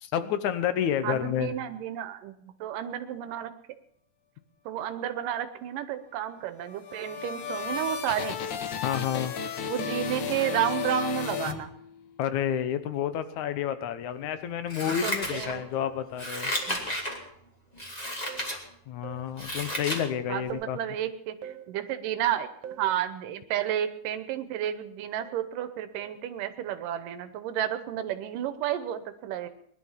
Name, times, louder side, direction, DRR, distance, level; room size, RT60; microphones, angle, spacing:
voice 1, 0.0-1.6 8.8-9.4 12.2-16.5 18.9-20.8, left 9 dB, 70° left, 11 dB, 2.3 m, -30 dB
voice 2, 1.0-3.5 4.7-8.4 9.7-11.7 14.8-15.6 16.7-16.8 20.3-22.5 22.8-29.5, right 10 dB, 90° right, 10 dB, 2.6 m, -31 dB
sound 1, 6.6-12.2, left 7 dB, 90° left, 1.0 m, -34 dB
Scissors, 14.7-15.8 16.1-17.2 17.8-18.6 19.0-20.1 20.5-20.6, left 1 dB, 15° left, 2.1 m, -33 dB
sound 2, 15.8-16.1 16.6-16.9 18.3-18.6 19.0-19.3 20.5-20.8 21.4-21.7 22.6-23.0 25.2-25.5 26.0-26.2, right 9 dB, 65° right, 1.8 m, -44 dB
20.0 x 11.5 x 5.7 m, 0.70 s
omnidirectional pair, 3.7 m